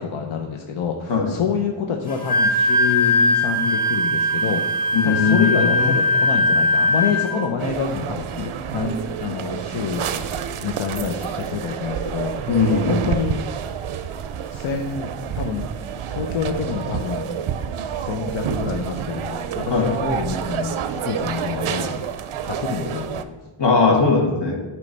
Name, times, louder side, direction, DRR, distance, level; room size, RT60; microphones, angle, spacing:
voice 1, 0.0-10.1 10.6-12.4 12.9-13.4 14.5-15.1 15.3-15.7 16.1-17.3 17.9-22.0 22.4-23.4, left 6 dB, 85° left, 2 dB, 0.7 m, -27 dB
Wind instrument woodwind instrument, 2.1-7.4, left 2 dB, 15° left, 1.6 m, -20 dB
voice 2, 4.9-6.0 12.5-13.1 19.7-19.9 23.6-24.6, left 4 dB, 60° left, 1 dB, 1.3 m, -19 dB
sound 1, 7.6-23.2, right 8 dB, 85° right, 0.5 m, -29 dB
8.4 x 3.2 x 5.2 m, 1.2 s
wide cardioid pair, 85°, 48 cm